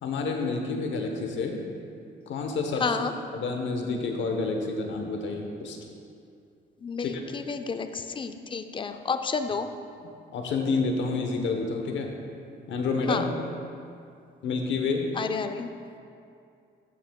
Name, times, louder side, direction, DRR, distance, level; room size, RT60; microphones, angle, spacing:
voice 1, 0.0-1.6 2.3-3.0 3.3-5.8 7.0-7.2 10.3-12.1 12.7-13.3 14.4-15.1, left 4 dB, 70° left, 3 dB, 1.0 m, -29 dB
voice 2, 2.8-3.1 6.8-9.7 13.1-13.3 15.2-15.7, left 5 dB, 25° left, 8 dB, 0.4 m, -30 dB
14.0 x 5.8 x 2.3 m, 2.4 s
cardioid pair, 90°, 20 cm